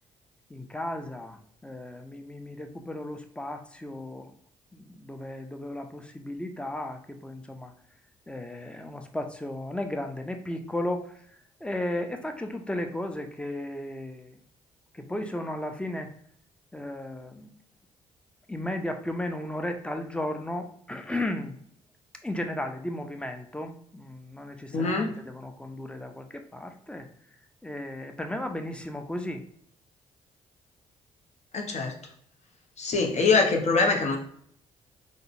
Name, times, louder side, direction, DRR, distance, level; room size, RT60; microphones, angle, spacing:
voice 1, 0.5-4.3 4.7-7.7 8.3-11.3 11.6-14.4 14.9-16.1 16.7-17.5 18.5-21.6 22.2-27.1 27.6-29.4, left 1 dB, 5° left, 5 dB, 0.5 m, -35 dB
voice 2, 24.7-25.1 31.5-31.9 32.8-34.2, left 4 dB, 45° left, 1 dB, 0.8 m, -23 dB
3.6 x 2.0 x 2.5 m, 0.63 s
hypercardioid pair, 45°, 16 cm